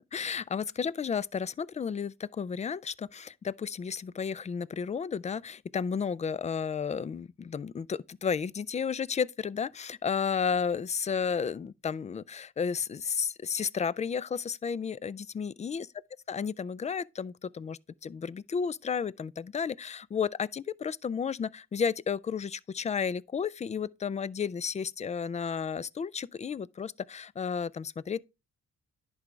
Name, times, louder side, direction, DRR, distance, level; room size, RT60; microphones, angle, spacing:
voice 1, 0.1-15.9 16.3-28.2, left 6 dB, 25° left, 0.3 m, -32 dB
10.5 x 4.8 x 3.2 m
cardioid pair, 90°, 30 cm